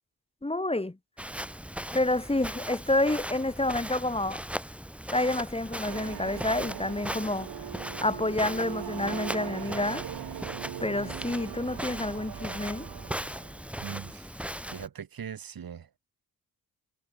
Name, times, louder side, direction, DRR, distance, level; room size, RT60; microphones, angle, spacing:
voice 1, 0.4-1.0 1.9-4.4 5.1-7.5 8.0-10.0 10.8-12.9, left 2 dB, 15° left, 2.5 m, -28 dB
Walk footsteps, 1.2-14.9, equal, 5° right, 4.6 m, -38 dB
sound 1, 5.8-13.7, right 11 dB, 85° right, 1.5 m, -40 dB
voice 2, 13.8-14.3 14.7-15.9, right 8 dB, 70° right, 2.7 m, -40 dB
cardioid pair, 75°, 37 cm